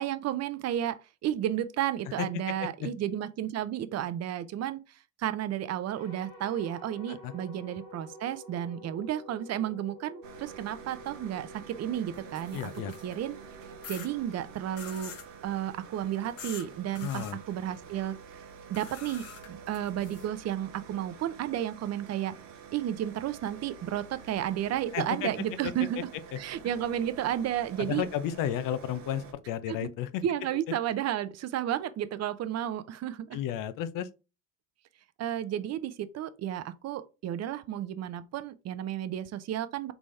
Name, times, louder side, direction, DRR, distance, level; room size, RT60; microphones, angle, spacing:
voice 1, 0.0-4.8 5.2-12.7 13.0-13.4 13.9-15.2 15.4-18.4 18.7-22.4 22.7-26.1 26.4-28.1 29.7-29.9 30.2-33.3 35.2-39.9, right 11 dB, 45° right, 0.6 m, -32 dB
sound 1, 5.9-15.2, equal, 85° left, 1.9 m, -50 dB
sound 2, 10.2-29.3, right 6 dB, 85° right, 0.9 m, -49 dB
sound 3, 12.1-13.2 13.8-14.1 14.8-15.3 16.4-16.7 17.0-17.3 18.7-20.3, left 6 dB, 40° left, 1.1 m, -45 dB
voice 2, 12.5-12.9 17.0-17.4 24.9-25.3 27.8-30.2 33.3-34.1, left 10 dB, 60° left, 0.7 m, -33 dB
4.0 x 3.5 x 3.2 m
hypercardioid pair, 75°, 37 cm